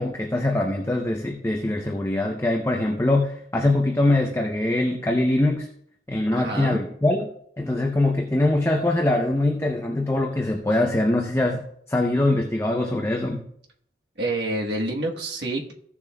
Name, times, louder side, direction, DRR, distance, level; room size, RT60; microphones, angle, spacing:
voice 1, 0.0-5.7 6.1-7.3 7.6-13.4, left 2 dB, 15° left, 1 dB, 0.6 m, -23 dB
voice 2, 6.3-6.8 14.2-15.7, right 2 dB, 70° right, 0 dB, 1.3 m, -28 dB
15.0 x 7.2 x 2.3 m, 0.68 s
head